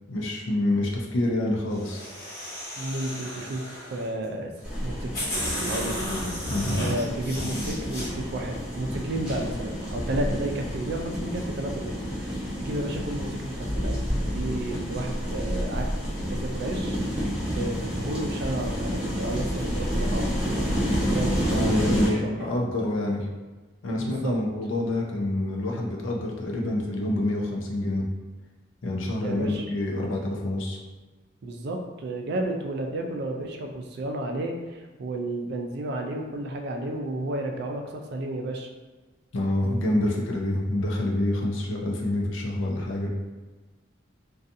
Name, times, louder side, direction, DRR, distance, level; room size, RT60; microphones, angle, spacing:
voice 1, 0.1-2.0 6.5-6.8 21.5-23.3 23.8-28.1 28.8-30.8 39.3-43.1, left 1 dB, 80° left, -1 dB, 0.5 m, -27 dB
sound 1, 1.7-4.1 4.7-4.8 5.1-8.1, equal, 50° left, 1.0 m, -33 dB
voice 2, 2.8-4.5 4.8-5.3 5.6-6.2 6.7-14.0 14.3-15.9 16.3-17.0 17.6-20.8 21.1-22.3 24.0-24.3 29.2-29.7 31.4-38.7, right 1 dB, 55° right, 2 dB, 0.3 m, -32 dB
sound 2, 4.6-22.1, equal, 5° right, 0.6 m, -29 dB
2.6 x 2.3 x 2.5 m, 1.3 s
head